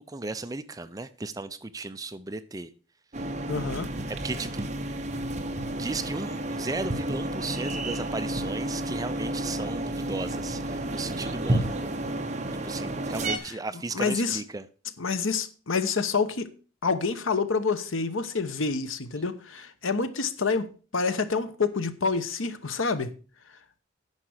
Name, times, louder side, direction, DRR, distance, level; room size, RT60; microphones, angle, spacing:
voice 1, 0.0-2.7 4.1-4.7 5.8-11.7 12.6-14.7, right 3 dB, 15° right, 0.4 m, -35 dB
sound 1, 3.1-13.4, right 1 dB, 35° right, 1.0 m, -31 dB
voice 2, 3.5-3.9 13.9-14.4 15.0-16.5 16.8-20.7 20.9-23.1, left 4 dB, 75° left, 1.0 m, -27 dB
9.8 x 5.8 x 6.4 m
head